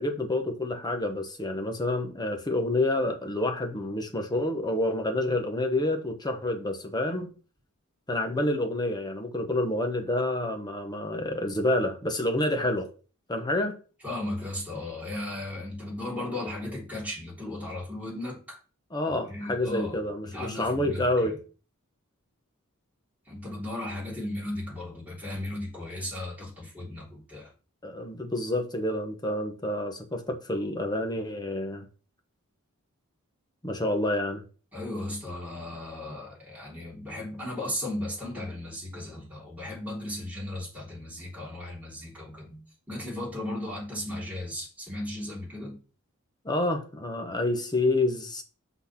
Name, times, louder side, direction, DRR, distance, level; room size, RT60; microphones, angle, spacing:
voice 1, 0.0-7.3 8.1-12.9 13.3-13.8 18.9-21.4 27.8-31.8 33.6-34.4 46.4-48.4, left 1 dB, 20° left, 1.1 m, -28 dB
voice 2, 14.0-18.6 19.1-21.3 23.3-27.5 34.7-42.6 42.9-45.8, left 1 dB, 5° right, 3.5 m, -36 dB
6.2 x 4.0 x 5.9 m
head